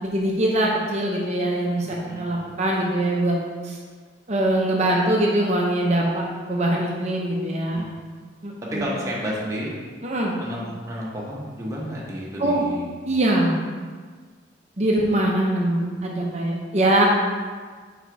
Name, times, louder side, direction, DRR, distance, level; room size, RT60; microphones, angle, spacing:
voice 1, 0.0-3.4 3.6-3.8 4.3-7.9 8.4-9.0 10.0-10.4 12.4-12.6 13.1-13.6 14.8-17.1, right 1 dB, 35° right, -2 dB, 0.6 m, -22 dB
voice 2, 1.8-2.5 7.7-7.9 8.7-9.8 10.4-12.9, equal, 15° right, -5 dB, 1.1 m, -31 dB
5.0 x 4.3 x 4.6 m, 1.5 s
head